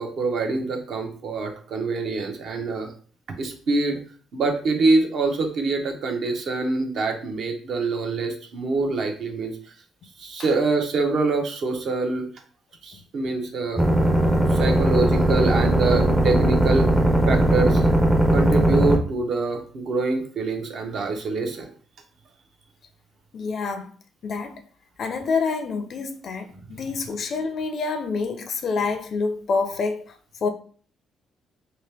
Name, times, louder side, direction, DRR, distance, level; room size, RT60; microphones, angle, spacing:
voice 1, 0.0-2.9 3.4-4.0 4.3-9.5 10.2-12.3 12.8-13.8 14.5-16.9 17.3-17.9 18.3-21.7, right 3 dB, 50° right, 0.7 m, -25 dB
sound 1, 13.8-19.0, right 1 dB, 10° right, 0.5 m, -19 dB
voice 2, 23.3-23.9 24.2-24.6 25.0-30.1 30.4-30.5, left 4 dB, 45° left, 0.5 m, -27 dB
3.2 x 2.9 x 3.3 m
cardioid pair, 155°, 0 cm